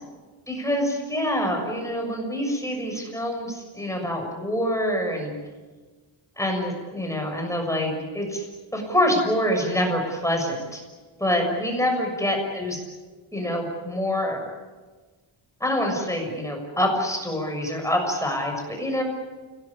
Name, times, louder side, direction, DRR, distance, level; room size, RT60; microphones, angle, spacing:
voice 1, 0.5-5.3 6.4-8.5 8.7-10.8 11.2-12.8 13.3-14.4 15.6-19.0, equal, 5° left, 2 dB, 6.7 m, -26 dB
29.5 x 18.5 x 9.9 m, 1.3 s
wide cardioid pair, 150°, 47 cm